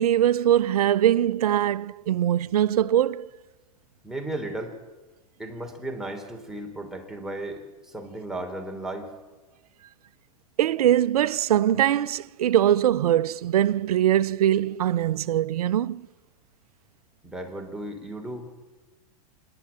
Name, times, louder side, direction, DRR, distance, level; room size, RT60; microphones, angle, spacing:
voice 1, 0.0-3.3 10.6-16.1, right 11 dB, 85° right, 0.7 m, -22 dB
voice 2, 4.0-4.8 5.4-9.1 17.2-18.5, right 1 dB, ahead, 3.3 m, -35 dB
26.5 x 12.0 x 8.9 m
hypercardioid pair, 120°, 19 cm